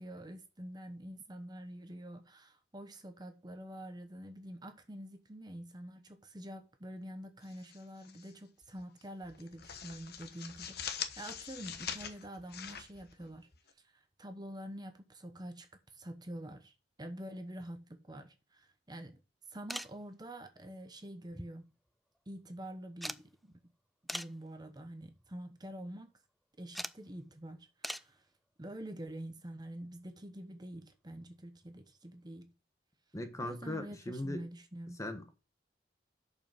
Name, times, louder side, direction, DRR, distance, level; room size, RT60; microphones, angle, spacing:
voice 1, 0.0-13.5 13.8-19.2 19.5-21.7 22.3-23.5 24.1-26.1 26.6-28.2 28.6-32.5 33.4-35.0, right 1 dB, 25° right, 0.9 m, -47 dB
sound 1, 7.4-8.3 8.6-8.8 9.2-13.7, left 8 dB, 65° left, 1.1 m, -44 dB
sound 2, 19.7-20.0 21.3-21.9 22.2-22.3 23.0-23.3 24.1-24.4 25.1-25.3 26.7-27.0 27.8-28.1 29.8-29.9 31.3-31.4 31.6-31.7, equal, ahead, 0.3 m, -41 dB
voice 2, 33.1-34.4 35.0-35.4, left 1 dB, 20° left, 1.2 m, -39 dB
6.9 x 5.3 x 7.0 m
head